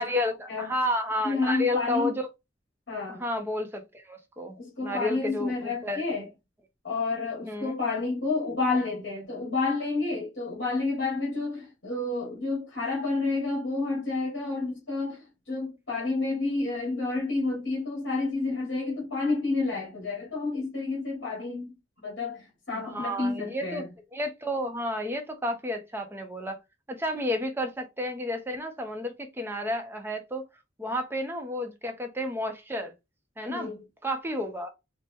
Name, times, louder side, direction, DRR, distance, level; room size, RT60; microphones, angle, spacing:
voice 1, 0.0-2.3 3.2-4.6 4.8-6.0 7.4-7.7 22.7-26.6 26.9-30.4 30.8-32.9 33.4-33.8 34.0-34.7, left 1 dB, 10° right, 0.6 m, -31 dB
voice 2, 1.2-2.1 2.9-3.2 4.5-6.3 6.8-23.9 33.5-33.8, left 3 dB, 60° left, 1.8 m, -30 dB
4.4 x 2.1 x 3.4 m
head